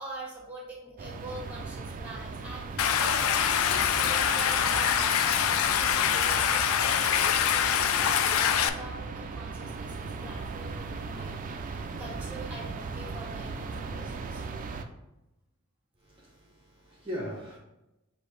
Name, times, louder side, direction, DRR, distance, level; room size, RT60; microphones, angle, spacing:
voice 1, 0.0-6.6 7.1-14.4, right 1 dB, 5° right, -3 dB, 1.4 m, -44 dB
sound 1, 1.0-14.8, right 4 dB, 40° right, 0.3 m, -38 dB
Stream, 2.8-8.7, left 8 dB, 85° left, 0.3 m, -25 dB
voice 2, 16.0-17.6, equal, 25° right, -4 dB, 0.7 m, -39 dB
6.4 x 2.6 x 3.2 m, 0.93 s
head